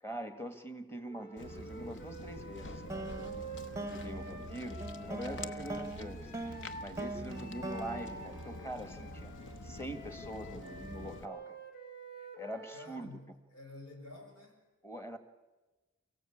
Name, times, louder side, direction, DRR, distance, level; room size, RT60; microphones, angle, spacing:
voice 1, 0.0-3.1 3.8-9.3 9.6-11.6 12.4-13.2 14.8-15.2, right 1 dB, 10° left, 9 dB, 1.7 m, -44 dB
Wind instrument woodwind instrument, 1.1-6.9 7.3-13.0, right 2 dB, 40° left, 4.0 m, -49 dB
Walk footsteps, 1.4-11.3, left 1 dB, 60° left, 1.1 m, -46 dB
sound 1, 2.9-9.3, right 2 dB, 15° right, 0.8 m, -43 dB
voice 2, 7.1-7.5 12.7-14.6, left 2 dB, 85° left, 3 dB, 6.0 m, -51 dB
29.5 x 16.0 x 8.6 m, 1.2 s
head